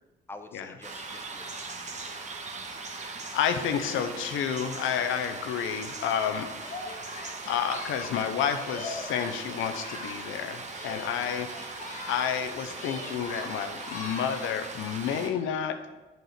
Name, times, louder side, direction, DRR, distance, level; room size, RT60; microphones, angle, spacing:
voice 1, 0.3-2.4, left 2 dB, 10° left, 6 dB, 0.8 m, -48 dB
sound 1, 0.8-15.3, right 3 dB, 35° right, 1.2 m, -40 dB
voice 2, 2.8-6.5 7.5-15.8, left 8 dB, 85° left, 8 dB, 0.7 m, -30 dB
Singing, 6.6-10.4 10.7-12.5 12.7-14.6, left 2 dB, 40° left, 1.5 m, -42 dB
7.9 x 4.6 x 6.5 m, 1.1 s
cardioid pair, 90°, 20 cm